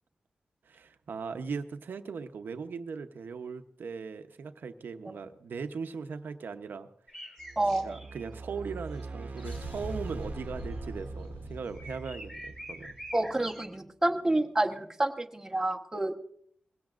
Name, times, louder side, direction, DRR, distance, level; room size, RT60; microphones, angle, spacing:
voice 1, 0.6-6.9 7.8-13.0, right 5 dB, 85° right, 9 dB, 0.8 m, -39 dB
sound 1, 7.1-8.3 8.9-10.2 10.6-10.8 11.2-11.3 11.7-13.7, equal, 10° left, 2.5 m, -46 dB
sound 2, 7.4-13.6, right 3 dB, 55° right, 1.0 m, -43 dB
voice 2, 7.6-7.9 13.1-16.2, right 2 dB, 15° right, 4 dB, 1.1 m, -28 dB
sound 3, 9.4-13.5, equal, 85° left, 7.4 m, -43 dB
21.5 x 16.5 x 2.5 m, 0.66 s
wide cardioid pair, 110°, 3 cm